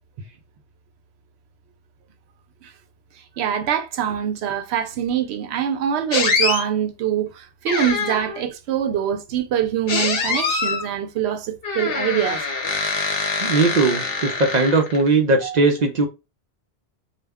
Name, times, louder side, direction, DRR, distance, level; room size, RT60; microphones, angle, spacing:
voice 1, 3.4-12.4 15.4-15.6, right 9 dB, 85° right, 0.8 m, -24 dB
sound 1, 6.1-6.6 7.7-8.4 9.9-10.9 11.6-15.1, left 4 dB, 65° left, 0.9 m, -24 dB
voice 2, 13.4-16.1, right 3 dB, 55° right, 0.5 m, -19 dB
2.3 x 2.1 x 3.4 m
omnidirectional pair, 1.1 m